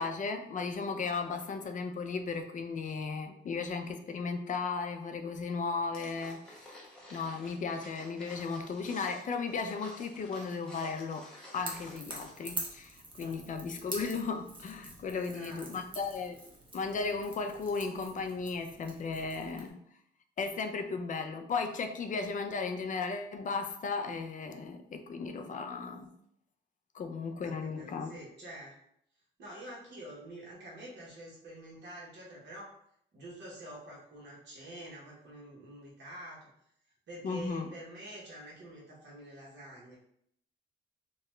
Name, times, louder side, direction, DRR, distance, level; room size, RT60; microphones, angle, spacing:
voice 1, 0.0-6.7 7.1-11.2 11.5-16.4 16.7-19.8 20.4-26.1 26.9-28.1 37.2-37.7, left 4 dB, 40° left, 6 dB, 0.4 m, -35 dB
sound 1, 5.9-12.6 12.9-13.0, left 1 dB, 5° left, 0.9 m, -52 dB
Crackle / Crack, 11.6-19.7, right 2 dB, 25° right, 0.8 m, -45 dB
voice 2, 13.2-13.5 15.1-15.7 27.4-28.7 29.4-32.7 33.1-36.5 37.1-40.0, right 1 dB, 60° right, -4 dB, 1.2 m, -47 dB
2.9 x 2.3 x 3.1 m, 0.70 s
cardioid pair, 90°, 20 cm